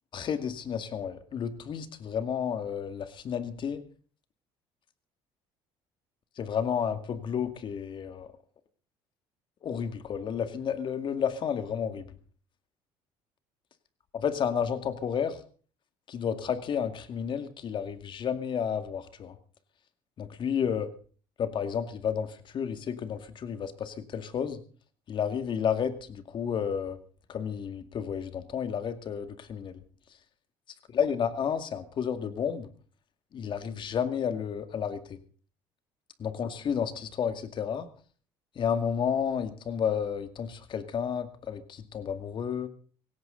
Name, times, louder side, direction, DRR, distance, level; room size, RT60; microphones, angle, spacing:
voice 1, 0.1-3.8 6.4-8.3 9.6-12.1 14.1-15.4 16.1-19.4 20.2-20.9 21.4-24.6 25.1-27.0 27.3-29.8 30.9-32.7 33.3-35.2 36.2-37.9 38.6-42.7, left 7 dB, 50° left, 9 dB, 2.2 m, -31 dB
17.5 x 17.0 x 3.9 m, 0.42 s
cardioid pair, 100°, 11 cm